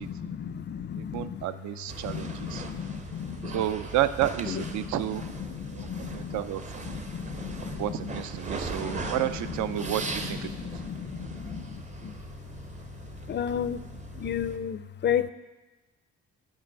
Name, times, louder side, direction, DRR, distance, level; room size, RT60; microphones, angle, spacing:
voice 1, 0.0-1.4 2.0-3.6 4.5-4.9 5.4-6.4 6.8-8.2 8.8-9.9 10.2-12.1 13.3-13.9 14.1-15.3, left 8 dB, 40° left, 13 dB, 0.4 m, -34 dB
voice 2, 1.0-2.6 3.5-5.2 5.7-7.1 7.7-11.0, right 13 dB, 70° right, 13 dB, 0.4 m, -31 dB
sound 1, 1.9-14.6, right 3 dB, 25° right, 0.6 m, -39 dB
7.6 x 4.7 x 4.5 m, 1.1 s
cardioid pair, 90°, 30 cm